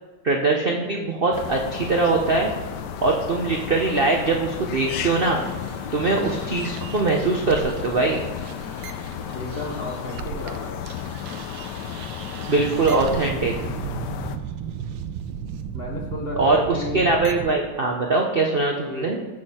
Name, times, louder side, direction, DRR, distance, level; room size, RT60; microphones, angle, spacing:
voice 1, 0.2-2.5 3.0-5.4 5.9-8.2 12.5-13.5 16.3-19.2, right 3 dB, 55° right, 1 dB, 0.6 m, -22 dB
sound 1, 1.3-14.4, left 8 dB, 70° left, 1.2 m, -33 dB
sound 2, 5.3-10.6 10.9-17.6, right 8 dB, 80° right, 1.4 m, -35 dB
voice 2, 9.3-11.1 15.7-17.1 18.9-19.3, left 2 dB, 45° left, 1 dB, 0.9 m, -33 dB
14.5 x 6.4 x 4.3 m, 1.4 s
omnidirectional pair, 2.1 m